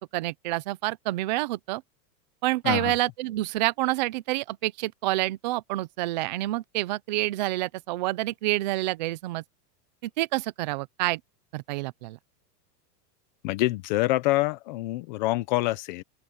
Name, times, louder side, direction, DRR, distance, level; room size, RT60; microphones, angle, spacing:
voice 1, 0.1-1.8 2.4-9.4 10.2-11.2 11.5-12.2, right 18 dB, 30° right, 0.4 m, -28 dB
voice 2, 13.4-16.0, left 18 dB, 30° left, 0.6 m, -26 dB
open air
supercardioid pair, 165°, 47 cm